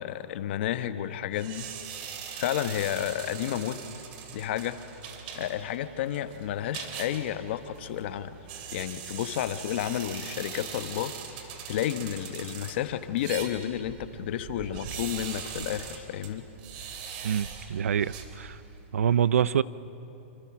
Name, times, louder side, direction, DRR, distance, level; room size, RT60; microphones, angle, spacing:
voice 1, 0.0-1.7 2.4-3.8 4.3-4.8 5.3-8.3 8.7-11.1 11.7-16.4, left 11 dB, 55° left, 11 dB, 1.2 m, -31 dB
sound 1, 1.3-18.8, right 7 dB, 45° right, 2.8 m, -41 dB
voice 2, 17.2-18.6 18.9-19.6, right 8 dB, 90° right, 18 dB, 0.6 m, -25 dB
27.0 x 26.5 x 6.1 m, 3.0 s
hypercardioid pair, 150°, 7 cm